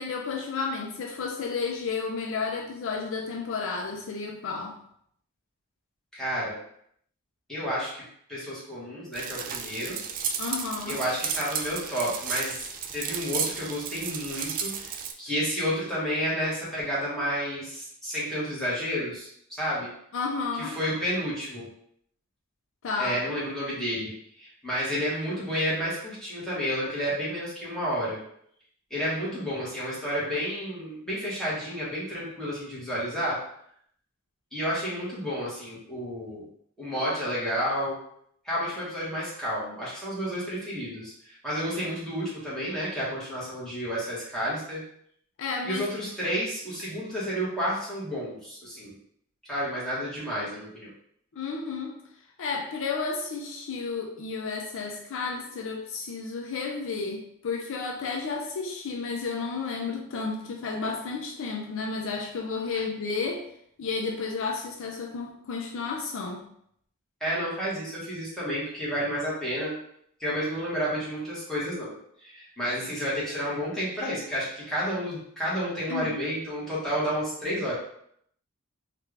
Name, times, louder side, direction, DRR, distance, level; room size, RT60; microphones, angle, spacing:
voice 1, 0.0-4.7 10.4-11.0 20.1-20.8 22.8-23.2 45.4-45.8 51.3-52.0 52.4-63.5 63.8-66.5 75.9-76.1, left 4 dB, 65° left, 1 dB, 0.5 m, -32 dB
voice 2, 6.1-6.6 7.5-8.0 8.3-10.0 10.9-12.7 12.9-14.9 15.2-19.9 20.5-21.7 23.0-28.2 28.9-33.4 34.5-36.5 36.8-38.0 38.4-44.8 45.6-48.9 49.5-50.9 67.2-69.8 70.2-77.7, equal, 5° left, -9 dB, 1.4 m, -31 dB
sound 1, 9.1-15.1, right 7 dB, 40° right, 0.3 m, -33 dB
3.3 x 2.4 x 3.2 m, 0.69 s
head